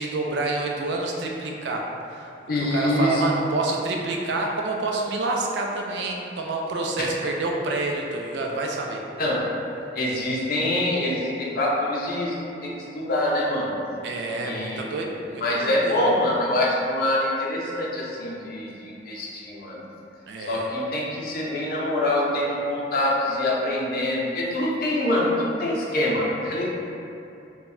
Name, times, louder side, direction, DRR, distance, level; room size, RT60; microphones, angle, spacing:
voice 1, 0.0-9.0 14.0-16.1 20.3-20.7, right 2 dB, 75° right, 0 dB, 0.3 m, -28 dB
voice 2, 2.5-3.2 9.2-9.5 9.9-12.3 12.6-13.8 14.4-14.8 15.4-19.8 20.5-26.7, left 1 dB, 55° left, -3 dB, 0.5 m, -25 dB
2.1 x 2.1 x 3.5 m, 2.6 s
head